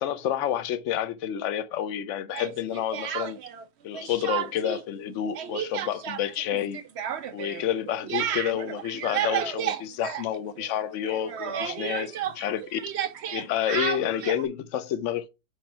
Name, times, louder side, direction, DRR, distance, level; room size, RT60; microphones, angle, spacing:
voice 1, 0.0-3.4 3.8-6.8 7.3-12.8 13.3-15.3, left 10 dB, 75° left, 0.7 m, -29 dB
Speech, 2.3-3.6 3.9-4.8 5.1-10.8 11.0-14.5, right 10 dB, 85° right, 0.5 m, -32 dB
5.6 x 5.1 x 4.2 m
omnidirectional pair, 2.0 m